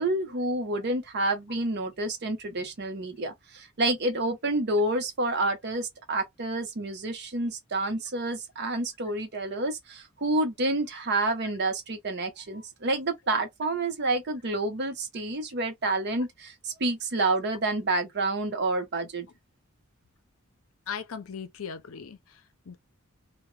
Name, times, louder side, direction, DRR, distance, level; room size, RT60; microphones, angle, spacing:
voice 1, 0.0-19.3, right 2 dB, 50° right, 0.7 m, -29 dB
voice 2, 20.9-22.8, left 6 dB, 75° left, 0.6 m, -39 dB
2.1 x 2.1 x 3.1 m
head